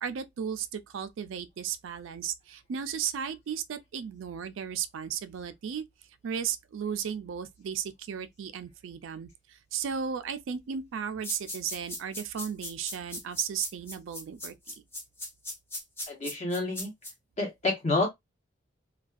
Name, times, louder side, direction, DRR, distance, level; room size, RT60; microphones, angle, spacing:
voice 1, 0.0-5.8 6.2-14.5, right 8 dB, 80° right, 0.3 m, -35 dB
sound 1, 11.2-17.1, left 1 dB, 10° left, 0.5 m, -38 dB
voice 2, 16.1-16.9 17.4-18.1, left 2 dB, 35° left, 0.9 m, -28 dB
2.5 x 2.2 x 2.3 m
head